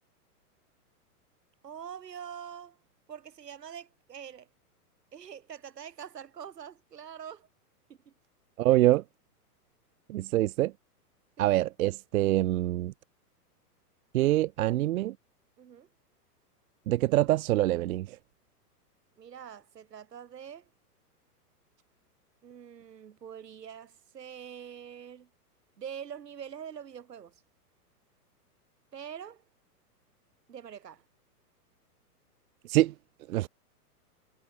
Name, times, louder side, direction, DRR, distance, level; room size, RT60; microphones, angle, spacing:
voice 1, 1.6-2.8 3.1-4.5 5.1-7.5 8.1-8.2 8.7-8.8 11.4-11.5 15.6-15.9 19.2-20.7 22.4-25.3 25.8-27.4 28.9-29.4 30.5-31.0, right 8 dB, 90° right, 2.6 m, -44 dB
voice 2, 8.6-9.0 10.1-10.7 11.4-12.9 14.1-15.2 16.9-18.2 32.6-32.9 33.3-33.5, right 15 dB, 65° right, 0.6 m, -25 dB
hypercardioid pair, 135°, 47 cm